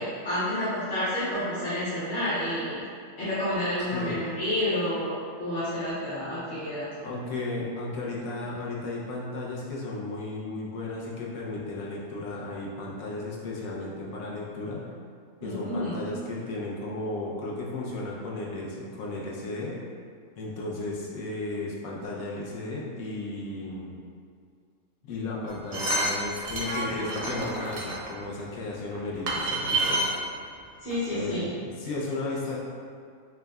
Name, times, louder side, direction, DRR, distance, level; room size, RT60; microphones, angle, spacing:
voice 1, 0.0-2.8 3.2-5.1 5.4-6.9 15.4-16.0 26.6-27.0 30.8-31.5, left 1 dB, 45° left, -13 dB, 1.1 m, -29 dB
voice 2, 3.9-4.2 7.0-14.8 15.4-19.8 20.4-24.0 25.0-30.0 31.1-32.6, left 2 dB, 85° left, -3 dB, 1.1 m, -34 dB
sound 1, 25.5-28.1 28.9-29.0 29.3-30.2 30.9-31.0 31.2-31.3, right 1 dB, 55° right, 0.5 m, -28 dB
6.1 x 2.1 x 2.3 m, 2.2 s
omnidirectional pair, 1.4 m